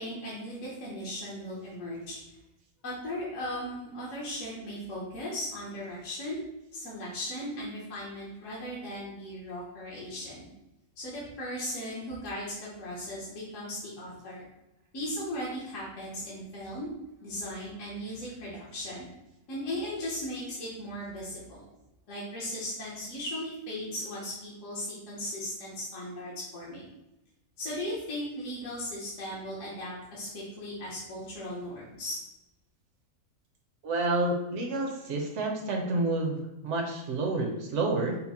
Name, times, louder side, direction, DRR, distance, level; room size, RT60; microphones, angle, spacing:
voice 1, 0.0-2.2 2.8-6.4 6.7-10.5 11.0-14.4 14.9-16.9 17.2-19.1 19.5-21.7 22.1-26.9 27.6-32.2, left 1 dB, 60° left, -7 dB, 1.3 m, -37 dB
voice 2, 33.8-38.2, right 2 dB, 60° right, 1 dB, 1.0 m, -29 dB
5.7 x 2.1 x 4.2 m, 0.95 s
omnidirectional pair, 1.6 m